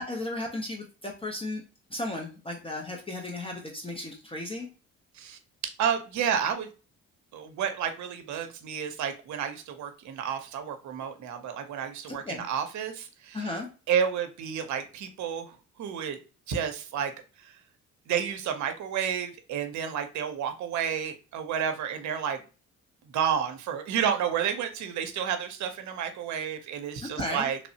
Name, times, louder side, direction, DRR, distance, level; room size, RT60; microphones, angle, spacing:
voice 1, 0.0-1.6 1.9-4.7 12.1-12.4 13.3-13.7 27.0-27.5, left 1 dB, 20° left, 0 dB, 0.6 m, -35 dB
voice 2, 5.8-6.7 7.3-13.5 13.9-16.2 16.5-17.1 17.4-17.5 18.1-22.4 23.1-27.6, right 8 dB, 70° right, 7 dB, 0.6 m, -30 dB
3.0 x 2.0 x 2.6 m, 0.34 s
cardioid pair, 90°, 30 cm